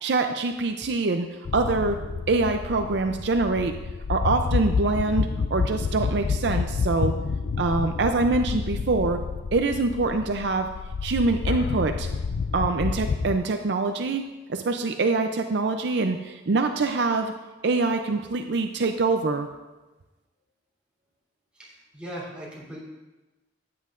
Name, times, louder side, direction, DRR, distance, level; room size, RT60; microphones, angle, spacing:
voice 1, 0.0-1.3 1.5-2.0 2.3-3.7 4.1-7.2 7.6-9.2 9.5-10.7 11.0-12.1 12.5-14.2 14.5-17.3 17.6-19.5, right 3 dB, 60° right, 6 dB, 0.5 m, -24 dB
sound 1, 1.4-13.4, left 5 dB, 55° left, 0.3 m, -29 dB
voice 2, 21.5-22.8, equal, 5° right, -7 dB, 3.3 m, -39 dB
13.5 x 9.5 x 2.5 m, 1.1 s
head